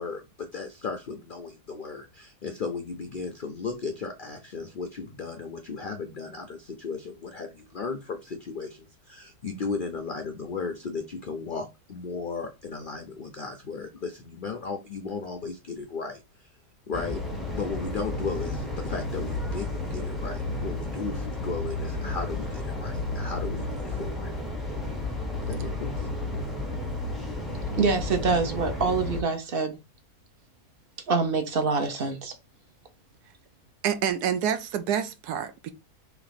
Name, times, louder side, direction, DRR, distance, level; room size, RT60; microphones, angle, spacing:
voice 1, 0.0-16.5 16.9-17.2 17.5-24.3 25.5-26.1, left 4 dB, 65° left, 0.5 m, -35 dB
sound 1, 16.9-29.2, left 2 dB, ahead, 0.7 m, -32 dB
voice 2, 27.8-29.8 31.1-32.3, right 4 dB, 45° right, 0.8 m, -25 dB
voice 3, 33.8-35.7, right 9 dB, 85° right, 1.2 m, -27 dB
3.4 x 3.2 x 3.9 m
omnidirectional pair, 1.6 m